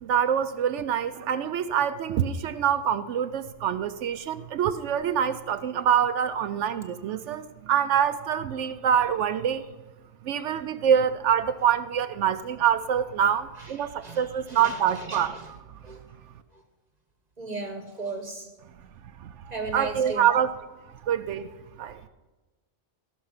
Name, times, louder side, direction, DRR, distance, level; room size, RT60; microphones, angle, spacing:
voice 1, 0.0-9.7 10.2-15.8 19.2-20.6 21.0-22.0, right 8 dB, 70° right, 11 dB, 0.9 m, -25 dB
voice 2, 14.0-15.5 15.8-16.0 16.5-16.6 17.4-18.5 19.5-20.3, right 3 dB, 35° right, 4 dB, 1.1 m, -36 dB
16.0 x 6.3 x 5.7 m, 1.2 s
omnidirectional pair, 1.3 m